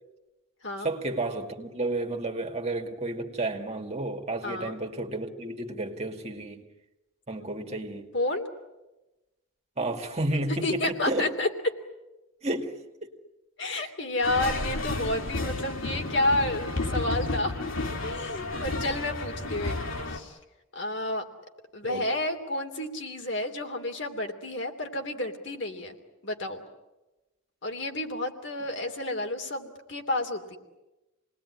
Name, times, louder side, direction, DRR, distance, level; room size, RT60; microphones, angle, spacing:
voice 1, 0.8-6.6 7.3-8.1 9.8-11.3 12.4-13.1 13.7-13.9 21.8-22.1, right 2 dB, 35° right, 3 dB, 2.4 m, -32 dB
voice 2, 4.4-4.8 8.1-8.5 10.6-11.5 13.6-17.7 18.0-19.8 20.1-20.4 20.7-21.2 21.7-26.0 26.2-26.6 27.6-30.6, left 2 dB, 60° left, 4 dB, 3.1 m, -30 dB
sound 1, 14.2-20.2, left 2 dB, 90° left, 3.2 m, -32 dB
28.5 x 20.5 x 9.9 m, 1.0 s
head